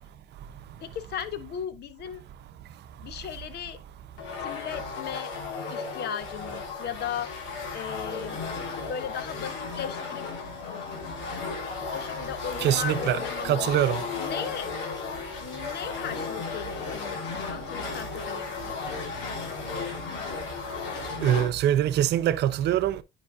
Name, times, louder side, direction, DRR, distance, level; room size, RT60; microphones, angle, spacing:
voice 1, 0.8-2.2 3.0-3.8 4.4-5.3 5.7-7.3 7.7-8.4 8.9-10.3 11.9-13.7 14.2-14.7 15.4-18.8, left 8 dB, 60° left, 0.9 m, -37 dB
sound 1, 4.2-21.5, left 5 dB, 75° left, 1.9 m, -35 dB
voice 2, 12.6-13.2 13.4-14.0 21.2-23.0, right 11 dB, 60° right, 0.7 m, -23 dB
9.7 x 5.1 x 2.3 m
supercardioid pair, 85°, 19 cm